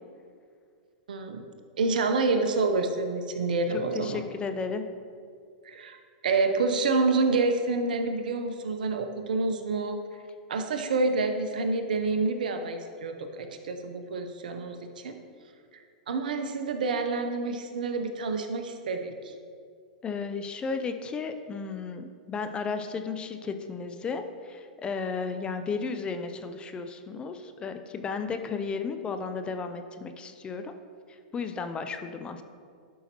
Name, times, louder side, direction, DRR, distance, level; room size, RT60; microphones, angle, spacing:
voice 1, 1.1-1.5 1.8-4.2 5.6-10.0 10.5-15.2 15.7-19.3, right 3 dB, 75° right, 6 dB, 0.8 m, -28 dB
voice 2, 3.9-4.8 20.0-30.7 31.3-32.4, left 5 dB, 20° left, 8 dB, 0.5 m, -34 dB
12.0 x 5.5 x 3.0 m, 2.2 s
hypercardioid pair, 110°, 5 cm